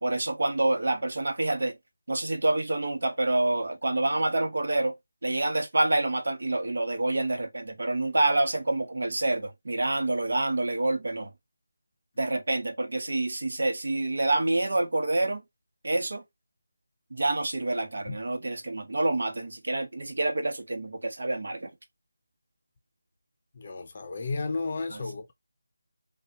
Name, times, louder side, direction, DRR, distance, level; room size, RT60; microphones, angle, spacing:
voice 1, 0.0-1.8 2.1-4.9 5.2-11.3 12.2-15.4 15.8-16.2 17.1-21.7 24.9-25.0, right 2 dB, 60° right, 1.1 m, -27 dB
voice 2, 23.5-25.3, left 3 dB, 30° left, 0.6 m, -33 dB
5.5 x 2.4 x 2.8 m
figure-of-eight pair, 175°, 0 cm